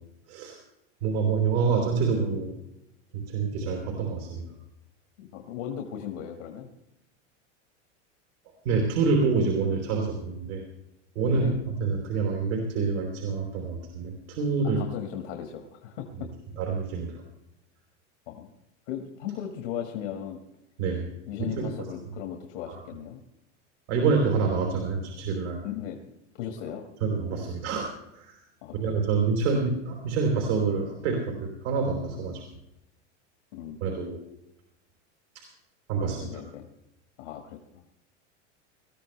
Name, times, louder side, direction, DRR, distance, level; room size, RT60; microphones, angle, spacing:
voice 1, 0.3-0.6 1.0-2.5 3.1-4.4 8.7-10.6 11.2-14.8 16.6-17.2 20.8-21.1 21.6-21.7 22.7-22.8 23.9-25.6 27.0-28.4 28.7-32.4 33.8-34.2 35.4-35.5 35.9-36.4, right 4 dB, 75° right, 1 dB, 3.6 m, -27 dB
voice 2, 5.2-6.7 11.3-11.5 14.8-16.3 18.3-18.5 18.9-20.4 21.3-23.2 25.6-26.0 26.4-26.9 28.6-29.1 33.5-33.8 36.2-36.7 37.2-37.6, left 9 dB, 75° left, 4 dB, 1.9 m, -37 dB
20.0 x 13.5 x 3.3 m, 0.86 s
hypercardioid pair, 110°, 36 cm